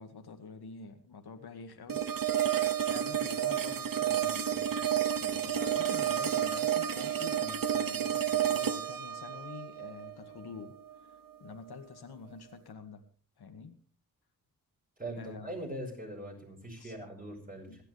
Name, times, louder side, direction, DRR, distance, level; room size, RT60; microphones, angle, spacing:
voice 1, 0.0-13.0 13.4-13.8 15.2-15.6 16.8-16.9 17.6-17.8, left 5 dB, 90° left, 6 dB, 2.0 m, -47 dB
sound 1, 1.9-10.9, right 9 dB, 60° right, 0.8 m, -31 dB
voice 2, 15.0-17.8, right 1 dB, 25° right, 1 dB, 5.9 m, -41 dB
27.0 x 10.5 x 3.4 m, 0.39 s
wide cardioid pair, 100°, 37 cm